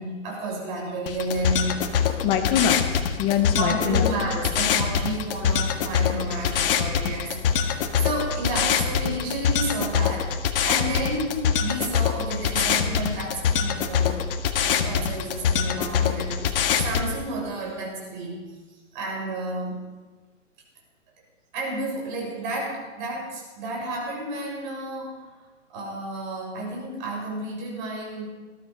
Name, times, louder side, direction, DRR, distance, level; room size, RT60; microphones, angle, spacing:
voice 1, 0.0-2.0 3.5-7.4 8.0-14.2 14.6-18.4 18.9-19.8 21.5-25.3 25.7-28.3, right 2 dB, 35° right, -2 dB, 6.7 m, -31 dB
sound 1, 1.1-17.1, left 7 dB, 45° left, 1.6 m, -24 dB
voice 2, 2.2-4.1 4.4-4.5 6.9-7.2, left 9 dB, 10° left, 8 dB, 0.6 m, -25 dB
20.0 x 13.0 x 5.5 m, 1.3 s
hypercardioid pair, 155°, 39 cm